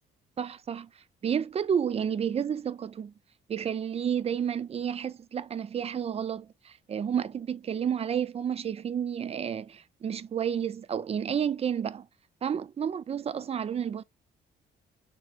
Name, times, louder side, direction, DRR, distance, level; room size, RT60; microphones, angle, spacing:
voice 1, 0.4-0.9 1.2-3.1 3.5-12.1 12.4-14.0, right 8 dB, 30° right, 0.4 m, -31 dB
3.3 x 3.1 x 3.2 m
cardioid pair, 90°, 20 cm